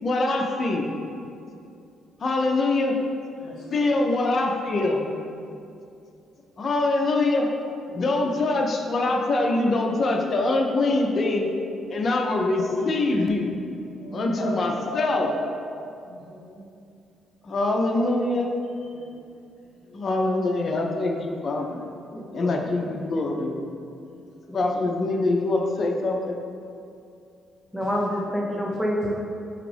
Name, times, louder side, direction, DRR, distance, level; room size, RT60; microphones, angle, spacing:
voice 1, 0.0-1.0 2.2-2.9 3.7-5.1 6.6-7.5 7.9-11.5 11.9-13.4 14.1-15.3 17.4-18.5 19.9-21.8 22.3-23.5 24.5-26.4, left 2 dB, 45° left, 2 dB, 0.5 m, -24 dB
voice 2, 3.4-3.9 7.9-8.3 10.7-11.1 12.6-12.7 13.1-13.3 14.0-14.5 14.8-15.5 16.0-16.6 17.7-17.8 18.8-19.2 19.8-20.1 24.0-24.2 27.8-27.9 29.0-29.1, left 2 dB, 70° left, -4 dB, 1.0 m, -35 dB
voice 3, 22.1-23.2 24.5-24.6 27.7-29.1, equal, 5° left, -2 dB, 0.6 m, -28 dB
5.9 x 2.4 x 3.3 m, 2.5 s
cardioid pair, 90°, 0 cm